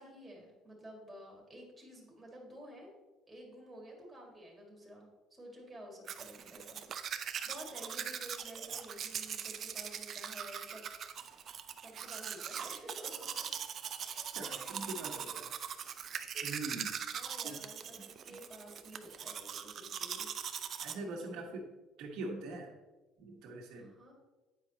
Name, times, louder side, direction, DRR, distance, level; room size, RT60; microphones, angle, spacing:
voice 1, 0.0-2.9 3.3-6.8 7.1-10.8 11.8-13.3 14.0-15.4 16.3-16.8 17.1-20.3 20.9-21.4 23.7-24.1, right 1 dB, 10° right, -2 dB, 2.2 m, -52 dB
Domestic sounds home sounds, 6.1-20.9, right 8 dB, 45° right, 0.4 m, -41 dB
voice 2, 14.3-15.5 16.4-16.9 17.4-17.6 18.0-18.1 20.8-21.6 22.0-22.7 23.2-23.9, right 2 dB, 65° right, 1 dB, 1.3 m, -43 dB
9.1 x 5.0 x 2.9 m, 1.1 s
cardioid pair, 115°, 0 cm